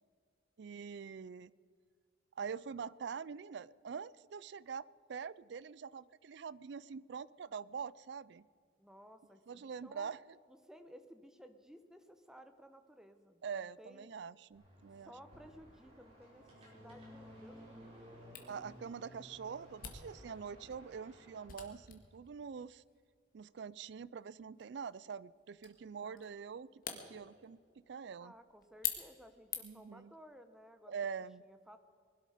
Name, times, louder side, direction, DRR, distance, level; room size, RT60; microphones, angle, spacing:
voice 1, 0.6-1.5 2.4-8.5 9.5-10.2 13.4-15.1 18.5-22.8 23.3-28.3 29.6-30.1 30.9-31.4, right 6 dB, 60° right, 20 dB, 0.4 m, -45 dB
voice 2, 8.8-10.2 10.5-14.1 15.0-18.1 26.0-26.4 28.2-30.9 31.4-31.8, equal, 5° right, 8 dB, 0.9 m, -57 dB
sound 1, 14.5-21.5, equal, 30° right, 4.7 m, -56 dB
Camera, 18.3-29.9, left 8 dB, 45° left, 1.8 m, -48 dB
20.5 x 12.0 x 5.0 m, 2.2 s
head